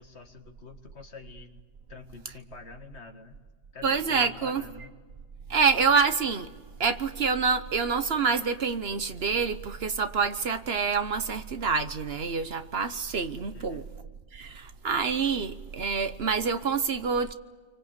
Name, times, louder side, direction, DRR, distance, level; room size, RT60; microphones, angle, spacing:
voice 1, 0.0-1.6 1.9-3.4 3.7-4.9 13.5-14.0, left 4 dB, 90° left, 2.1 m, -46 dB
voice 2, 3.8-4.6 5.5-6.5 6.8-13.8 14.3-17.3, right 5 dB, 65° right, 1.3 m, -27 dB
27.0 x 24.5 x 8.1 m
omnidirectional pair, 1.1 m